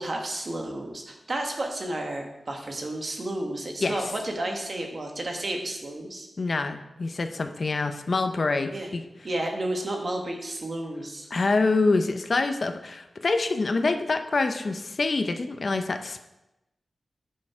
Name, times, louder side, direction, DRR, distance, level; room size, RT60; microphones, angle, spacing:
voice 1, 0.0-6.3 8.7-8.9 9.2-11.3, right 1 dB, 45° right, 2 dB, 1.4 m, -32 dB
voice 2, 6.4-9.0 11.3-16.2, left 3 dB, 50° left, 7 dB, 0.6 m, -26 dB
9.5 x 6.4 x 4.4 m, 0.94 s
wide cardioid pair, 120°, 0 cm